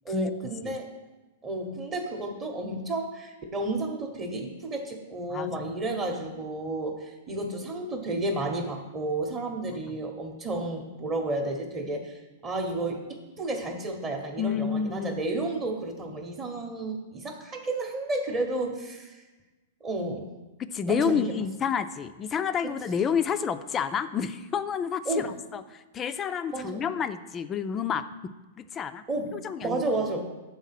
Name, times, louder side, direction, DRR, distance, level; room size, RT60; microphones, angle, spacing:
voice 1, 0.0-0.9 1.4-19.2 19.8-20.3 20.9-21.3 25.1-25.3 26.5-26.8 29.1-30.2, right 2 dB, 25° right, 2 dB, 0.8 m, -32 dB
voice 2, 14.4-15.4 20.6-28.0 28.6-29.0 29.3-29.8, left 7 dB, 20° left, 12 dB, 0.3 m, -29 dB
7.2 x 3.6 x 5.7 m, 1.2 s
hypercardioid pair, 145°, 0 cm